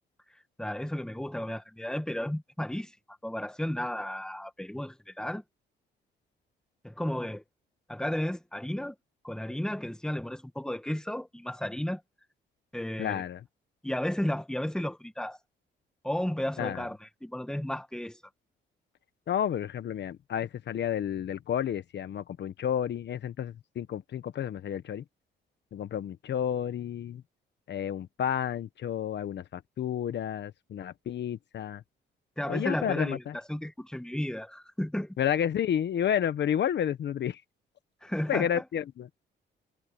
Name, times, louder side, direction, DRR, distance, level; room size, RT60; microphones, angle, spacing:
voice 1, 0.6-2.9 3.2-5.4 6.8-7.4 7.9-8.9 9.2-12.0 12.7-13.2 13.8-15.4 16.0-18.2 32.4-35.2 38.0-38.6, left 1 dB, 5° left, 1.9 m, -33 dB
voice 2, 13.0-13.4 16.6-16.8 19.3-25.0 25.7-27.2 27.7-31.8 32.5-33.3 35.2-37.4 38.3-39.1, left 9 dB, 60° left, 1.3 m, -31 dB
cardioid pair, 90°, 20 cm